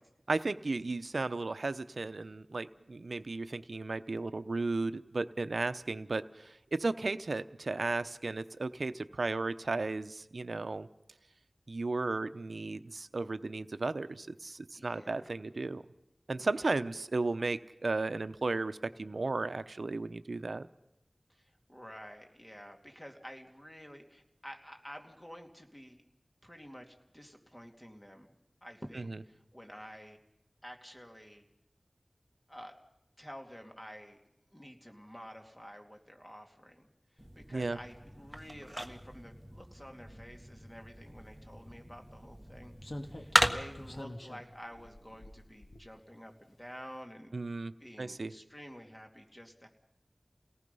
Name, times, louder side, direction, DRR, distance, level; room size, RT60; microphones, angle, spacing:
voice 1, 0.3-10.9 11.7-15.8 16.3-20.7 29.0-29.2 37.5-37.8 47.3-47.7 48.0-48.3, right 3 dB, 85° right, 12 dB, 0.7 m, -34 dB
voice 2, 14.7-15.3 16.5-16.7 21.3-26.0 26.4-28.3 28.6-30.2 30.6-31.4 32.5-32.8 33.2-34.2 34.5-36.9 37.2-42.7 43.0-47.4 47.8-49.7, equal, 15° left, 3 dB, 2.7 m, -50 dB
sound 1, 37.2-44.0, right 1 dB, 10° right, 1.5 m, -36 dB
Slam, 41.4-41.5 42.8-46.3 46.6-46.8, left 1 dB, 55° left, 2.0 m, -47 dB
29.0 x 18.5 x 5.5 m, 0.88 s
wide cardioid pair, 50°, 0 cm